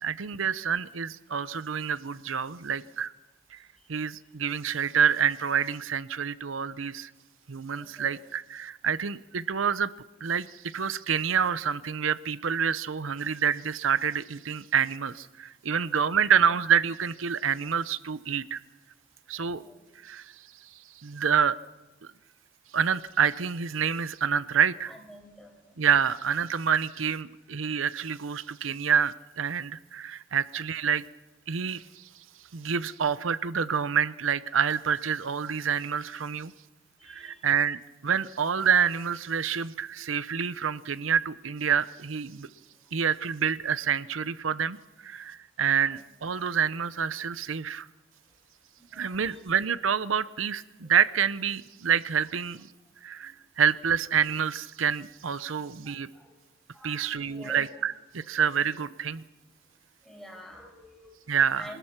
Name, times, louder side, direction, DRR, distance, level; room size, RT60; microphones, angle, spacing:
voice 1, 0.0-3.1 3.5-3.6 3.9-7.1 7.5-9.9 10.2-18.6 19.3-19.6 20.0-20.3 21.0-21.6 22.0-22.1 22.7-24.9 25.8-31.0 31.5-32.1 32.5-36.5 37.1-42.5 42.9-44.8 45.0-47.9 48.9-52.7 53.0-56.1 56.8-59.2 61.3-61.7, right 7 dB, 90° right, 15 dB, 0.7 m, -27 dB
voice 2, 7.7-8.2 19.4-19.8 24.9-25.8 37.0-37.4 45.6-46.0 48.8-49.4 53.2-53.3 55.8-56.3 56.7-57.7 60.0-61.8, equal, ahead, 1 dB, 5.2 m, -48 dB
25.5 x 20.5 x 5.9 m, 1.1 s
head